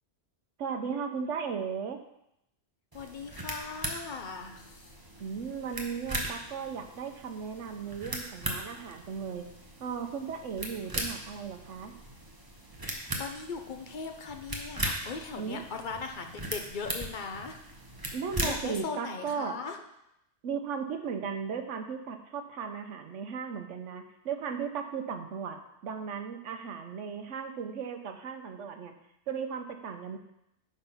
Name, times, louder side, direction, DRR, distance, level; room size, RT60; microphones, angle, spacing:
voice 1, 0.6-2.0 5.2-9.5 9.8-11.9 15.4-15.6 18.1-19.6 20.4-25.6 25.8-28.9 29.3-30.2, right 6 dB, 70° right, 6 dB, 1.1 m, -36 dB
voice 2, 2.9-4.9 12.9-17.6 18.0-18.2 18.4-19.8, left 5 dB, 45° left, 5 dB, 0.8 m, -39 dB
sound 1, 2.9-18.8, right 1 dB, 20° right, 0.9 m, -39 dB
9.1 x 4.0 x 5.7 m, 0.82 s
omnidirectional pair, 1.3 m